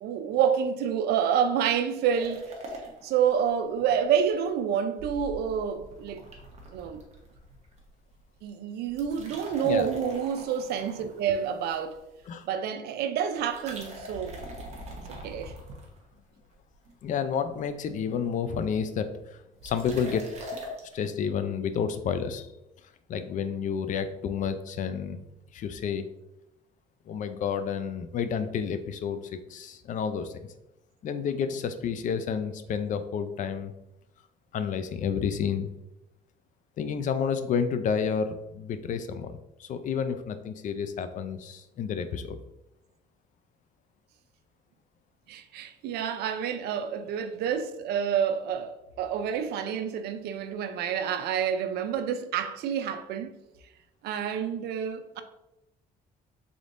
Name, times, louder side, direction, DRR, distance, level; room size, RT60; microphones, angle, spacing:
voice 1, 0.0-2.4 3.0-6.2 6.7-7.0 8.4-12.0 12.4-14.4 15.2-15.5 45.3-53.3 54.0-55.2, right 8 dB, 75° right, 0.4 m, -28 dB
sound 1, 2.1-4.0 4.3-4.4 5.0-7.8 8.1-8.4 8.8-12.2 13.4-16.4 16.8-17.4 17.6-17.7 18.0-18.1 18.2-18.5 19.6-20.9, equal, 40° right, 1.0 m, -43 dB
voice 2, 17.0-20.3 20.9-22.5 23.1-25.2 25.5-26.1 27.1-30.5 31.0-33.7 34.5-35.7 36.8-42.4, left 7 dB, 50° left, 0.4 m, -30 dB
3.7 x 3.5 x 2.5 m
cardioid pair, 110°, 17 cm